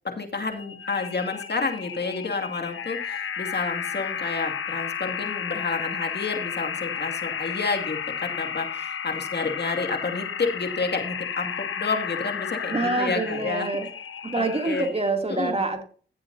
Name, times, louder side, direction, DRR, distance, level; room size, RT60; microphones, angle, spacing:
voice 1, 0.0-13.7 14.3-14.9 15.3-15.6, left 4 dB, 55° left, 4 dB, 2.3 m, -30 dB
sound 1, 0.5-15.1, left 7 dB, 75° left, 1.0 m, -33 dB
voice 2, 12.7-13.9 14.2-15.8, right 3 dB, 30° right, 4 dB, 2.7 m, -26 dB
15.0 x 7.9 x 2.7 m, 0.42 s
cardioid pair, 50°, 21 cm